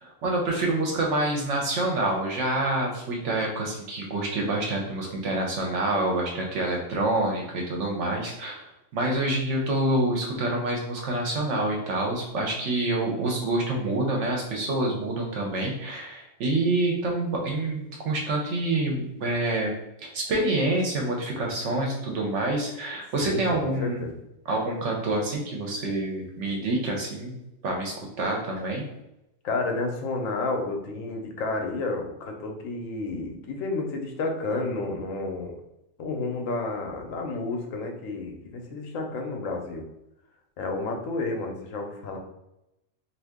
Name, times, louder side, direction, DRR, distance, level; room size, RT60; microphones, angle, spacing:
voice 1, 0.0-24.0 24.5-27.4 27.6-28.8, right 2 dB, 70° right, 0 dB, 1.0 m, -27 dB
voice 2, 23.2-24.1 29.4-35.5 36.0-39.9 40.6-42.2, left 3 dB, 90° left, 3 dB, 1.1 m, -31 dB
2.7 x 2.6 x 3.5 m, 0.88 s
omnidirectional pair, 1.3 m